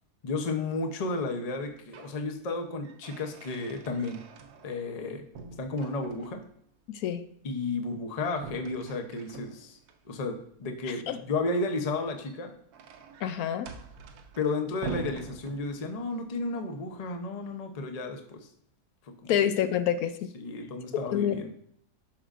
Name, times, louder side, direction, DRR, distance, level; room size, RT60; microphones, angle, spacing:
voice 1, 0.2-4.2 4.6-5.2 5.6-6.4 7.4-9.8 10.0-12.5 14.4-18.5 19.0-19.4 20.3-21.5, left 3 dB, 35° left, 5 dB, 0.6 m, -33 dB
sound 1, 1.6-2.2 2.6-5.0 5.3-6.5 8.3-10.0 12.0-16.1, right 5 dB, 90° right, 1.2 m, -44 dB
voice 2, 13.2-13.7 19.3-20.3 21.1-21.4, left 10 dB, 80° left, 10 dB, 1.0 m, -27 dB
11.5 x 5.1 x 2.5 m, 0.66 s
omnidirectional pair, 1.6 m